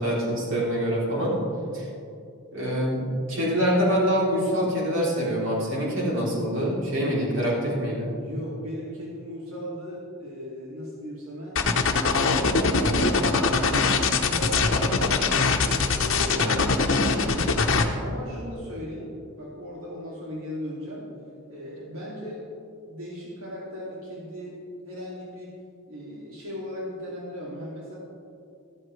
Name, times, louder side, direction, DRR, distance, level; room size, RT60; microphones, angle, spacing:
voice 1, 0.0-1.4 1.7-1.9 2.5-8.2 16.4-16.7, equal, 60° right, -5 dB, 3.3 m, -25 dB
voice 2, 8.0-11.6 12.1-14.0 14.3-17.2 17.6-21.1 21.5-22.4 22.8-24.6 24.8-25.5 25.9-28.0, equal, 90° right, -6 dB, 2.5 m, -37 dB
sound 1, 11.5-17.8, left 4 dB, 65° left, 0.9 m, -22 dB
14.0 x 13.0 x 3.2 m, 2.5 s
head